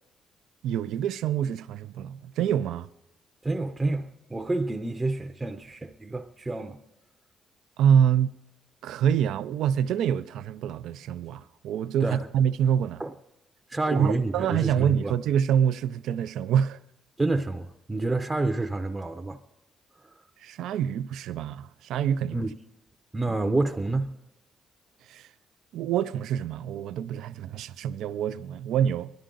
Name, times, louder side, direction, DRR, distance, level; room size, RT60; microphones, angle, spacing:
voice 1, 0.6-2.9 7.8-8.3 8.8-13.0 13.9-16.8 20.4-22.4 25.1-25.3 25.7-29.1, right 9 dB, 85° right, 0.4 m, -26 dB
voice 2, 3.4-6.8 12.0-12.2 13.0-13.1 13.7-15.1 17.2-19.4 22.3-22.5 23.1-24.1, right 2 dB, 20° right, 0.6 m, -28 dB
22.5 x 11.5 x 3.8 m
cardioid pair, 90°, 0 cm